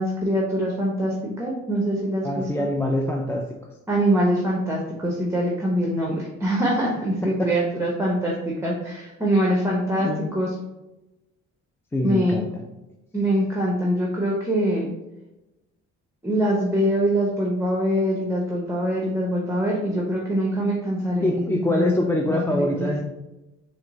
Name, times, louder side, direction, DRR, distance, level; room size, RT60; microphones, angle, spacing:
voice 1, 0.0-2.5 3.9-10.5 12.0-12.4 13.1-14.9 16.2-22.9, equal, 10° right, -2 dB, 0.7 m, -24 dB
voice 2, 2.2-3.5 7.2-7.5 10.0-10.3 11.9-12.5 21.2-23.0, left 1 dB, 10° left, 1 dB, 0.3 m, -24 dB
4.2 x 2.0 x 3.8 m, 1.0 s
cardioid pair, 90°, 30 cm